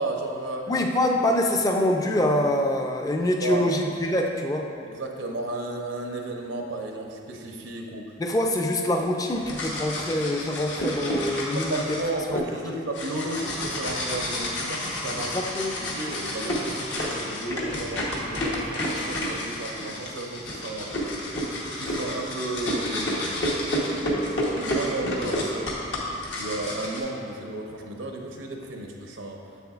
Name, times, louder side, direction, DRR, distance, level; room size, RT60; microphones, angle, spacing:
voice 1, 0.0-0.7 3.4-3.7 4.9-8.0 11.7-15.3 15.8-20.9 21.8-25.6 26.3-29.4, right 2 dB, 90° right, 1 dB, 0.7 m, -33 dB
voice 2, 0.7-4.7 8.2-12.0 12.3-12.8 15.2-15.8, left 1 dB, 20° left, 2 dB, 0.4 m, -25 dB
sound 1, 9.3-12.4 12.9-27.0, left 1 dB, 70° left, 1.1 m, -30 dB
7.7 x 6.9 x 2.4 m, 2.4 s
head